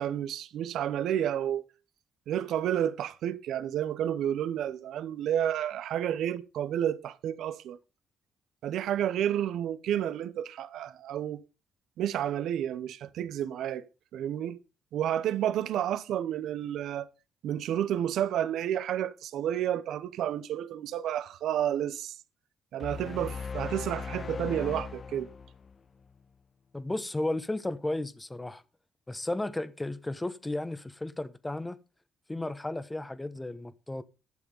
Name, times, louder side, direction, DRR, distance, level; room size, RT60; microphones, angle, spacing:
voice 1, 0.0-1.6 2.3-7.8 8.6-11.4 12.0-13.8 14.1-14.6 14.9-17.1 17.4-22.1 22.7-25.3, right 10 dB, 80° right, 0.9 m, -30 dB
sound 1, 22.8-26.1, left 5 dB, 40° left, 0.8 m, -38 dB
voice 2, 26.7-28.6 29.1-31.8 32.3-34.0, left 2 dB, 15° left, 1.1 m, -34 dB
12.0 x 7.0 x 5.5 m
cardioid pair, 90°, 0 cm